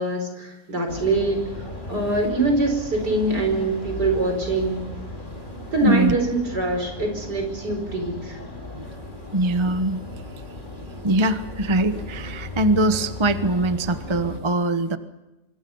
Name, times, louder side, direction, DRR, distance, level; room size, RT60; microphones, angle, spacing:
voice 1, 0.0-4.9 5.7-8.4, right 2 dB, 70° right, 4 dB, 5.7 m, -24 dB
sound 1, 0.9-14.4, left 1 dB, 30° left, 3.7 m, -36 dB
voice 2, 5.8-6.1 8.7-8.9 9.3-10.0 11.0-15.0, right 1 dB, 20° right, 10 dB, 0.9 m, -22 dB
26.0 x 25.0 x 5.5 m, 1.0 s
omnidirectional pair, 1.8 m